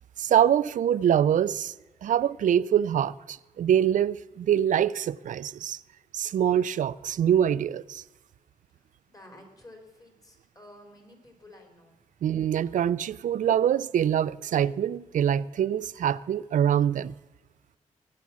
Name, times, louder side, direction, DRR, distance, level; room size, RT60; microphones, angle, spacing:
voice 1, 0.2-1.7 2.0-5.8 6.1-8.0 12.2-17.1, right 9 dB, 75° right, 0.5 m, -24 dB
voice 2, 8.7-12.0, left 1 dB, 25° left, 4.1 m, -52 dB
20.0 x 8.5 x 6.2 m
cardioid pair, 80°, 13 cm